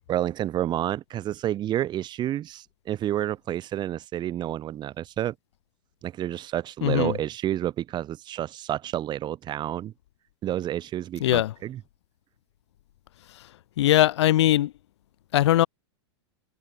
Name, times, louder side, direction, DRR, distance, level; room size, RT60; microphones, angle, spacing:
voice 1, 0.1-5.3 6.0-9.9 10.4-11.8, right 12 dB, 30° right, 5.6 m, -29 dB
voice 2, 6.8-7.2 11.2-11.5 13.8-14.7 15.3-15.7, left 13 dB, 70° left, 5.9 m, -20 dB
hypercardioid pair, 130°, 15 cm